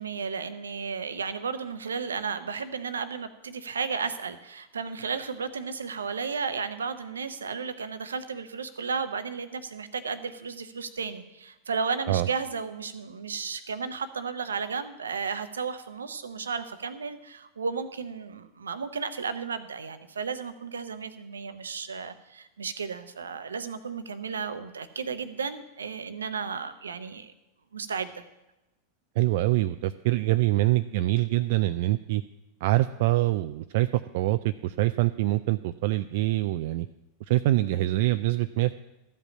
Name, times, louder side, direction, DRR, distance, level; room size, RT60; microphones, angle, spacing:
voice 1, 0.0-27.3 27.7-28.2, right 5 dB, 80° right, 12 dB, 0.8 m, -33 dB
voice 2, 29.2-32.2 32.6-33.9 34.1-36.9 37.3-38.8, right 16 dB, 60° right, 10 dB, 0.3 m, -25 dB
13.0 x 5.4 x 8.5 m, 0.97 s
figure-of-eight pair, 90°, 0 cm